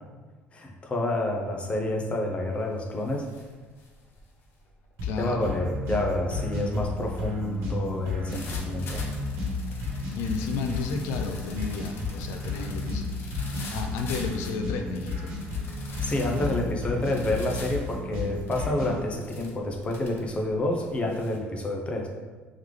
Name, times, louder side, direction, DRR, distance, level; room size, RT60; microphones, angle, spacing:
voice 1, 0.5-3.2 5.2-9.1 16.0-22.1, left 1 dB, 25° left, 1 dB, 0.6 m, -28 dB
sound 1, 1.8-2.1 2.4-21.4, left 2 dB, 60° left, 0.7 m, -46 dB
voice 2, 5.0-5.6 10.1-13.1 13.7-15.3, left 4 dB, 85° left, 5 dB, 0.4 m, -32 dB
sound 2, 5.0-19.0, left 3 dB, 75° right, 1.1 m, -33 dB
3.7 x 3.2 x 3.2 m, 1.4 s
cardioid pair, 120°, 4 cm